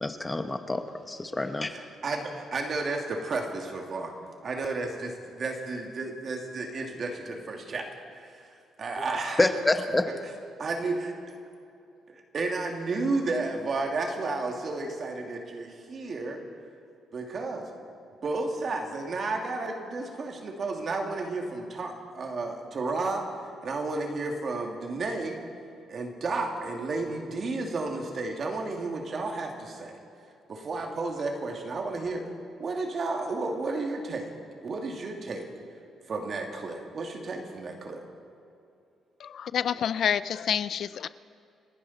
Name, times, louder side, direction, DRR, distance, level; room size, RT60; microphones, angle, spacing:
voice 1, 0.0-1.7 9.4-10.1, left 2 dB, 15° left, 8 dB, 1.0 m, -27 dB
voice 2, 1.7-4.1 4.4-7.9 8.1-9.5 10.1-10.2 10.6-11.1 12.1-16.4 17.1-17.7 18.2-23.3 23.6-25.4 25.9-30.0 30.5-32.2 32.6-34.3 34.6-35.5 36.1-38.0, right 3 dB, 50° right, 2 dB, 2.4 m, -32 dB
voice 3, 39.2-41.1, left 8 dB, 65° left, 16 dB, 0.4 m, -28 dB
29.5 x 10.0 x 4.2 m, 2.6 s
cardioid pair, 90°, 0 cm